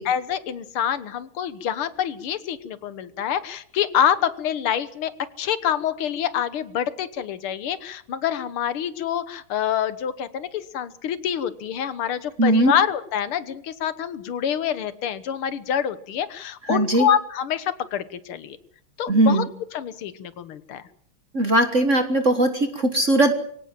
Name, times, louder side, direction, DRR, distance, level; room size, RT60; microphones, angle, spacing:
voice 1, 0.0-18.6 19.0-19.5 19.7-20.8, left 9 dB, 85° left, 14 dB, 2.1 m, -26 dB
voice 2, 12.4-12.7 16.7-17.1 19.1-19.5 21.3-23.3, right 1 dB, 40° right, 7 dB, 1.8 m, -19 dB
24.0 x 17.5 x 7.5 m, 0.63 s
omnidirectional pair, 2.3 m